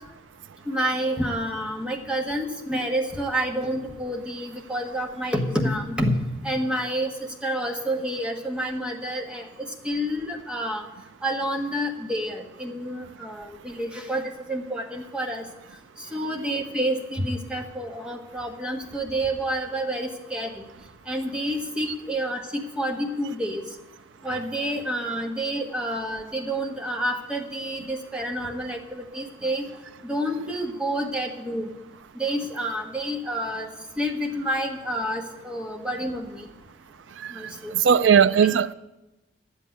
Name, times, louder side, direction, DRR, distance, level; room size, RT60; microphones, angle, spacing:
voice 1, 0.7-7.1 7.4-10.8 11.2-15.4 16.1-20.6 21.1-23.6 24.2-29.7 30.0-31.7 32.1-33.7 34.0-36.5 37.3-38.1 38.4-38.5, right 1 dB, 5° right, 1.4 m, -29 dB
voice 2, 37.7-38.7, right 7 dB, 85° right, 0.4 m, -18 dB
11.0 x 8.2 x 9.7 m
head